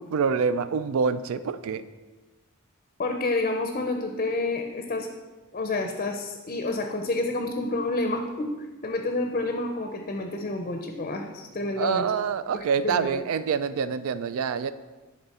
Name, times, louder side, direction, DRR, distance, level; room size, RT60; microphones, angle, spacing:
voice 1, 0.0-1.9 11.8-14.7, right 6 dB, 65° right, 14 dB, 0.3 m, -26 dB
voice 2, 3.0-5.1 5.5-8.5 8.8-12.1 12.8-13.1, left 2 dB, 35° left, 4 dB, 0.5 m, -29 dB
10.5 x 3.8 x 4.2 m, 1.3 s
head